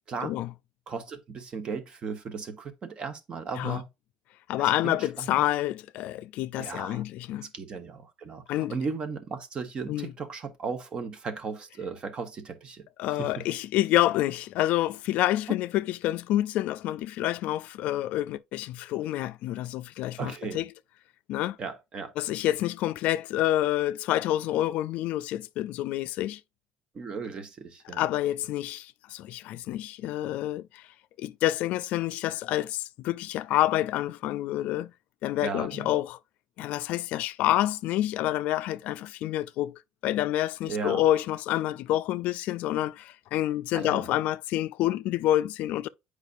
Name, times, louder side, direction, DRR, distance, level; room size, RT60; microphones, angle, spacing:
voice 1, 0.9-3.9 4.6-5.4 6.6-7.0 7.5-12.8 13.2-13.3 20.2-20.6 21.6-22.1 26.9-28.0 35.4-35.9 40.7-41.0 43.7-44.1, right 5 dB, 35° right, 1.2 m, -36 dB
voice 2, 4.5-7.5 8.5-8.8 9.9-10.1 13.0-20.7 21.3-21.6 22.2-26.4 27.9-30.9 31.2-34.9 35.2-36.2 36.6-45.9, left 14 dB, 70° left, 0.3 m, -28 dB
8.2 x 4.9 x 2.5 m
cardioid pair, 130°, 3 cm